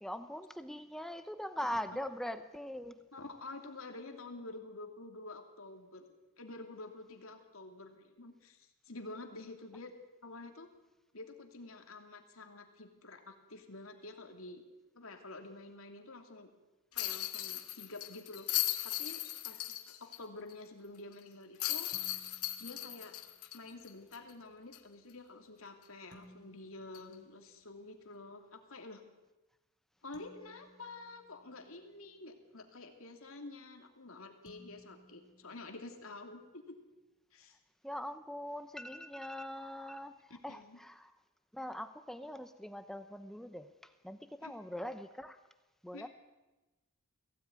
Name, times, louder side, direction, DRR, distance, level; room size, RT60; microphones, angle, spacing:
voice 1, 0.0-3.1 37.8-41.1 41.5-45.4 45.8-46.1, left 1 dB, ahead, 9 dB, 0.7 m, -42 dB
voice 2, 3.1-6.0 6.4-9.9 10.2-10.7 11.1-14.6 14.9-16.5 16.9-18.5 18.8-21.9 22.6-23.2 23.5-29.0 30.0-36.8 37.3-37.6 40.5-40.8 44.4-44.5 45.9-46.1, left 2 dB, 65° left, 4 dB, 2.9 m, -49 dB
sound 1, 17.0-20.2 20.5-20.6 21.6-24.3 24.7-24.8 26.9-27.1, left 14 dB, 85° left, 1.8 m, -37 dB
sound 2, 21.9-23.6 26.1-28.1 30.1-32.3 34.5-36.5, equal, 20° left, 2.9 m, -62 dB
21.5 x 16.5 x 9.5 m, 1.1 s
head